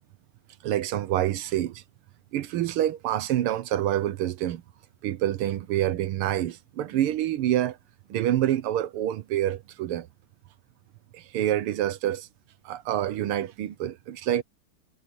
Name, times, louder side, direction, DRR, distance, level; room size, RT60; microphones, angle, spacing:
voice 1, 0.6-1.8 2.3-4.6 5.0-7.8 8.1-10.1 11.1-12.3 12.7-14.4, right 12 dB, 85° right, 1.8 m, -27 dB
omnidirectional pair, 2.4 m